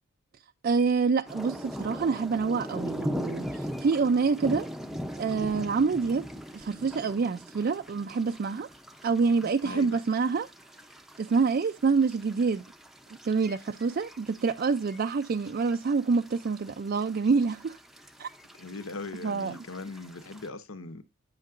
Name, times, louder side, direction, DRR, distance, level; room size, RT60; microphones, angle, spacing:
voice 1, 0.6-4.7 5.2-6.3 6.5-8.7 9.0-10.5 11.2-12.7 13.2-17.8 18.2-18.3 19.2-19.5, right 4 dB, 45° right, 0.3 m, -26 dB
sound 1, 1.3-20.5, equal, ahead, 0.6 m, -41 dB
voice 2, 9.4-10.0 18.6-21.0, left 3 dB, 75° left, 0.9 m, -40 dB
8.6 x 8.1 x 2.5 m
head